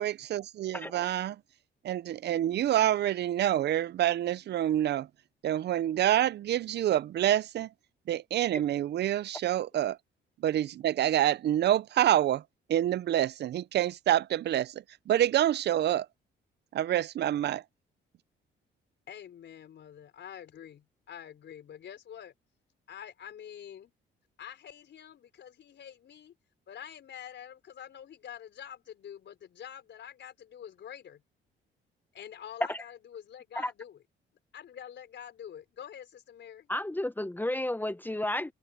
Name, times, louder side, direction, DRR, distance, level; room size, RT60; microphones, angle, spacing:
voice 1, 0.0-1.4 1.8-5.1 5.4-7.7 8.1-10.0 10.4-12.4 12.7-14.7 15.1-16.1 16.7-17.6, right 12 dB, 60° right, 0.6 m, -27 dB
voice 2, 0.7-1.1 32.7-32.8 33.5-33.7 36.7-38.5, left 1 dB, 10° left, 0.9 m, -32 dB
voice 3, 19.1-22.3 22.9-23.9 24.4-26.3 26.7-31.2 32.1-34.0 34.5-36.7, left 9 dB, 65° left, 4.9 m, -46 dB
cardioid pair, 90°, 20 cm